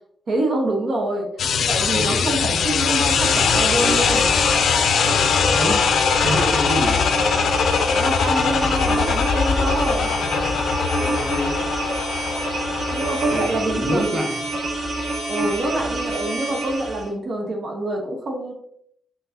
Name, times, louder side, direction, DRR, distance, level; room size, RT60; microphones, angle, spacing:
voice 1, 0.3-1.3 1.7-4.3 7.9-10.2 12.9-14.3 15.3-18.5, right 1 dB, 55° right, 1 dB, 1.2 m, -26 dB
sound 1, 1.4-13.4, left 6 dB, 75° left, 0.6 m, -21 dB
voice 2, 2.0-2.4 5.5-5.9 6.2-7.1 11.0-11.6 13.3-14.4, equal, 25° right, 2 dB, 1.4 m, -27 dB
sound 2, 2.3-17.1, right 2 dB, 85° right, 2.2 m, -28 dB
6.3 x 5.9 x 2.9 m, 0.69 s
wide cardioid pair, 120°, 0 cm